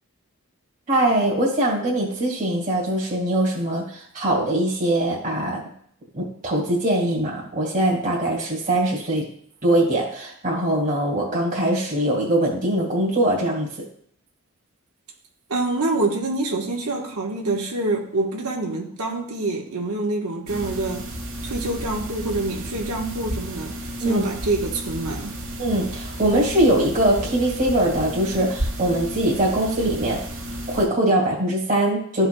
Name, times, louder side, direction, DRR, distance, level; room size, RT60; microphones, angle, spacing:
voice 1, 0.9-3.8 4.1-5.6 6.1-9.3 9.6-13.7 24.0-24.2 25.6-30.2 30.7-32.3, right 1 dB, 35° right, 1.7 m, -22 dB
voice 2, 15.5-21.1 21.4-25.4, right 2 dB, 85° right, 1.2 m, -26 dB
sound 1, 20.5-30.9, equal, 65° right, 1.8 m, -32 dB
13.0 x 4.8 x 2.2 m
head